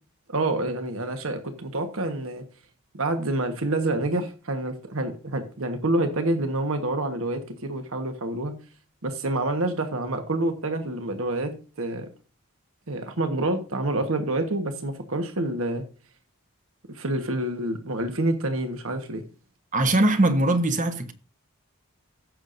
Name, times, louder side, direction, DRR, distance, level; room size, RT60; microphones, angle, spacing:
voice 1, 0.3-2.4 2.9-8.5 9.0-11.5 11.8-12.1 12.9-15.8 16.9-19.2, right 2 dB, 70° right, 1.3 m, -27 dB
voice 2, 19.7-21.1, right 2 dB, 35° right, 0.9 m, -21 dB
16.0 x 6.7 x 2.6 m
head